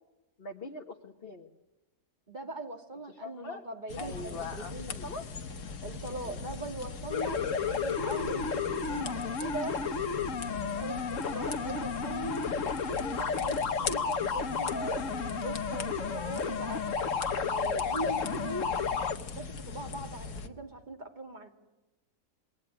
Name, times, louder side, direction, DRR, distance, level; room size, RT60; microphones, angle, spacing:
voice 1, 0.4-1.5 3.1-3.6 4.0-4.7 5.0-5.2 6.2-6.4 10.7-11.0 18.2-18.4, left 4 dB, 40° left, 3 dB, 1.7 m, -42 dB
voice 2, 2.3-5.1 5.8-9.8 10.8-12.5 12.9-16.8 17.3-18.7 19.3-21.5, right 2 dB, 30° right, 5 dB, 2.8 m, -40 dB
sound 1, 3.9-20.5, left 4 dB, 85° left, 2.1 m, -41 dB
sound 2, 7.1-19.2, left 5 dB, 55° left, 1.6 m, -32 dB
28.0 x 21.5 x 9.9 m, 1.1 s
omnidirectional pair, 1.6 m